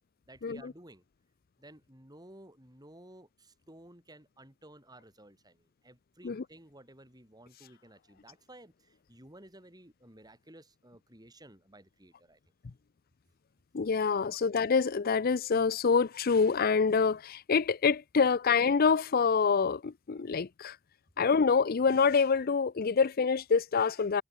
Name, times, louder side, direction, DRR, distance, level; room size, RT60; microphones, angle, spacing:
voice 1, 0.3-1.0 1.6-12.4 14.3-14.4, right 1 dB, 20° right, 6.4 m, -55 dB
voice 2, 13.7-20.8 21.2-24.2, left 5 dB, 45° left, 0.5 m, -26 dB
head